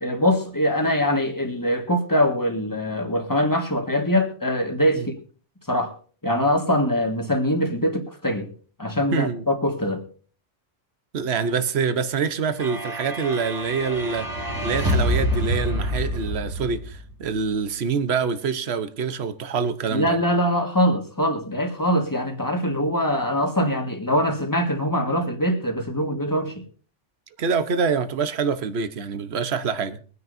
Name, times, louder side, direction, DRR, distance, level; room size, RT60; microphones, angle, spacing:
voice 1, 0.0-5.1 5.7-5.9 6.2-8.5 8.8-10.0 19.9-26.6, equal, 15° left, 1.7 m, -23 dB
voice 2, 9.1-9.4 11.1-14.3 14.6-20.2 27.4-30.0, right 5 dB, 65° right, 1.2 m, -25 dB
sound 1, 12.6-17.3, equal, 15° right, 2.0 m, -26 dB
23.5 x 9.7 x 2.7 m
omnidirectional pair, 1.2 m